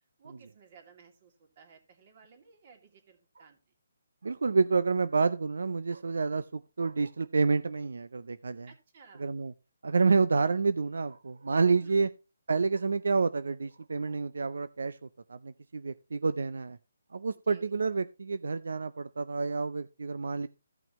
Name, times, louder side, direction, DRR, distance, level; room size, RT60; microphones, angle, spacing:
voice 1, 0.2-3.6 8.7-9.3 11.7-12.0 17.5-17.7, right 6 dB, 40° right, 2.6 m, -57 dB
voice 2, 4.2-8.7 9.2-9.5 9.8-12.1 12.5-15.0 15.3-16.8 17.1-20.5, right 4 dB, 75° right, 0.5 m, -28 dB
15.5 x 5.9 x 3.0 m
hypercardioid pair, 160°, 0 cm